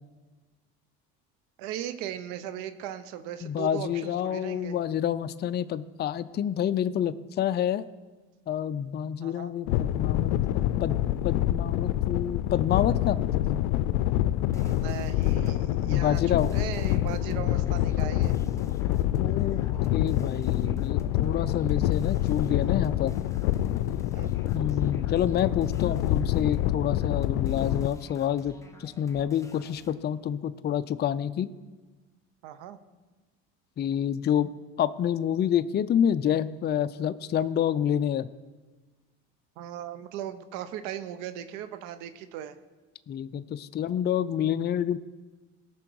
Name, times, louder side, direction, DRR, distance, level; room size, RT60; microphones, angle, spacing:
voice 1, 1.6-4.8 9.2-9.5 14.5-18.4 24.1-24.7 32.4-32.8 39.6-42.6, right 11 dB, 85° right, 11 dB, 0.8 m, -38 dB
voice 2, 3.4-7.8 8.5-11.0 11.2-13.2 15.9-16.5 19.2-19.6 19.9-23.1 24.5-31.5 33.8-34.5 34.8-38.3 43.1-45.0, left 9 dB, 30° left, 13 dB, 0.4 m, -28 dB
sound 1, 9.7-27.9, left 13 dB, 90° left, 0.5 m, -26 dB
sound 2, 14.5-15.7 16.1-29.9, left 3 dB, 10° left, 1.1 m, -51 dB
17.5 x 6.1 x 4.6 m, 1.3 s
supercardioid pair, 90°, 32 cm